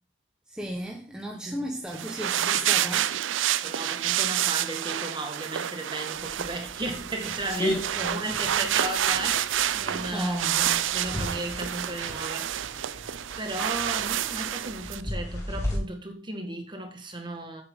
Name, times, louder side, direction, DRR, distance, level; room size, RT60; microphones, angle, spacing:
voice 1, 0.5-3.1 7.7-8.3 9.9-10.8, right 1 dB, 5° right, 1.3 m, -35 dB
voice 2, 1.3-1.7 3.5-10.4 10.9-12.8 13.4-17.6, right 1 dB, 25° right, 1.8 m, -35 dB
sound 1, 1.9-15.0, right 11 dB, 90° right, 0.5 m, -29 dB
sound 2, 6.1-15.8, equal, 15° left, 3.1 m, -37 dB
9.0 x 8.3 x 3.8 m
head